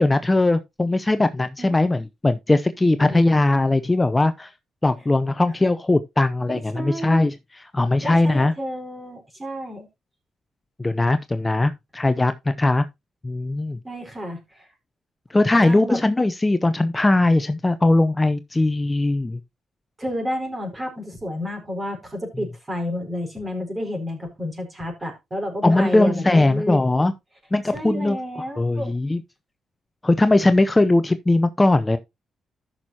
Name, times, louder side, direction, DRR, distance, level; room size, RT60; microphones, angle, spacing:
voice 1, 0.0-4.5 4.8-8.5 10.8-12.8 13.2-13.8 15.3-19.4 25.6-27.1 27.5-28.2 28.6-29.2 30.0-32.0, left 2 dB, 20° left, 0.6 m, -20 dB
voice 2, 6.5-7.2 8.0-9.9 13.8-14.7 15.6-16.0 20.0-26.8 27.7-28.9, equal, 25° right, 4.7 m, -31 dB
14.0 x 6.2 x 2.8 m
cardioid pair, 75°, 0 cm